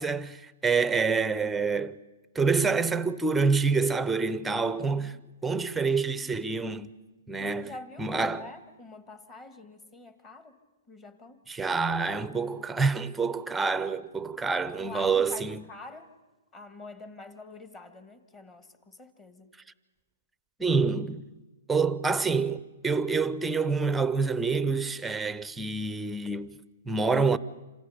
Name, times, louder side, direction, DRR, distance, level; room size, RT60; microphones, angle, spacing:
voice 1, 0.0-2.0 2.3-5.2 5.4-6.9 7.3-8.5 11.5-15.6 20.6-21.3 21.7-27.4, right 4 dB, 5° right, 0.7 m, -27 dB
voice 2, 7.4-10.5 10.9-11.4 14.8-16.1 16.5-19.5, left 3 dB, 20° left, 1.8 m, -46 dB
27.5 x 26.5 x 5.2 m
hypercardioid pair, 150°, 0 cm